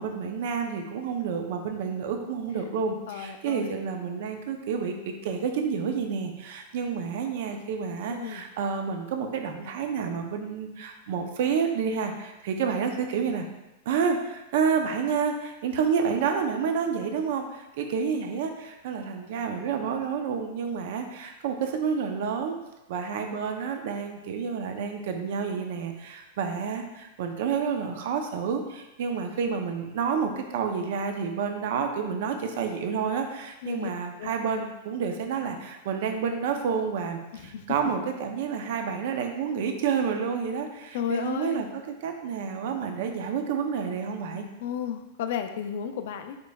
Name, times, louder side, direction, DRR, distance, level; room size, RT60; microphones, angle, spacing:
voice 1, 0.0-13.5 13.9-22.5 22.9-41.7 42.0-44.5, right 6 dB, 55° right, 5 dB, 0.6 m, -29 dB
voice 2, 3.1-3.7 8.1-8.4 33.6-33.9 34.2-34.3 37.3-37.7 40.9-41.7 44.6-46.4, left 8 dB, 60° left, 8 dB, 0.4 m, -33 dB
5.2 x 3.9 x 2.3 m, 0.99 s
supercardioid pair, 165°, 0 cm